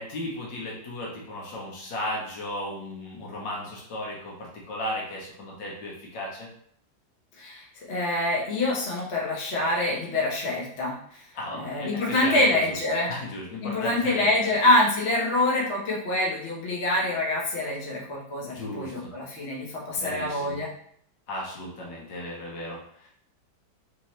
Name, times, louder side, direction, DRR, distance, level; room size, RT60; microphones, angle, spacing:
voice 1, 0.0-6.5 11.4-12.8 13.1-14.3 18.5-19.1 20.0-20.6 21.3-23.1, left 1 dB, 75° left, -3 dB, 1.7 m, -35 dB
voice 2, 7.4-11.2 11.5-13.1 13.6-20.7, left 1 dB, 45° left, -4 dB, 1.0 m, -26 dB
4.3 x 2.7 x 3.1 m, 0.64 s
omnidirectional pair, 2.1 m